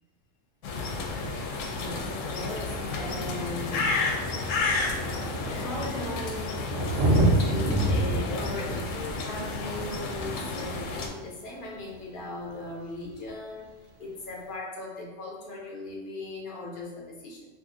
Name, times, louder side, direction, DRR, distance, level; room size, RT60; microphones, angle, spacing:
sound 1, 0.6-11.1, left 3 dB, 80° left, 0.9 m, -32 dB
voice 1, 1.7-4.6 5.5-17.5, left 2 dB, 50° left, -2 dB, 0.7 m, -38 dB
Thunder, 2.7-2.8 3.7-3.8 4.0-11.3 13.0-13.1, right 1 dB, 75° right, 1.0 m, -28 dB
2.6 x 2.4 x 3.7 m, 1.2 s
omnidirectional pair, 1.3 m